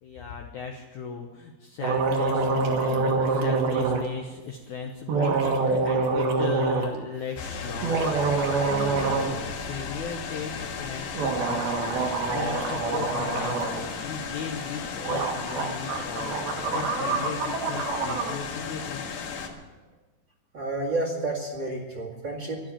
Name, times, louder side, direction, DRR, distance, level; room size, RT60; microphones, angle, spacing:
voice 1, 0.0-19.0, left 6 dB, 90° left, 2 dB, 1.6 m, -37 dB
sound 1, 1.8-4.0 5.1-6.9 7.7-9.4 9.6-9.7 11.2-13.8 14.8-14.9 15.0-18.4, right 4 dB, 65° right, 3.3 m, -26 dB
sound 2, 7.4-19.5, left 5 dB, 75° left, 3.5 m, -35 dB
voice 2, 20.5-22.6, right 2 dB, 35° right, -1 dB, 2.0 m, -30 dB
12.5 x 11.5 x 8.9 m, 1.2 s
omnidirectional pair, 5.0 m